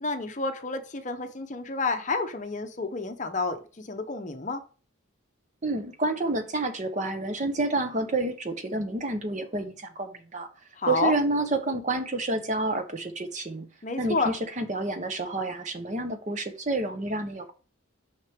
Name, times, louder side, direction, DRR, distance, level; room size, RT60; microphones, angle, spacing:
voice 1, 0.0-4.6 10.8-11.1 13.8-14.3, left 3 dB, 35° left, 0.7 m, -30 dB
voice 2, 5.6-10.5 10.9-13.6 14.0-17.5, right 2 dB, 35° right, 0.8 m, -29 dB
6.1 x 5.8 x 3.5 m
head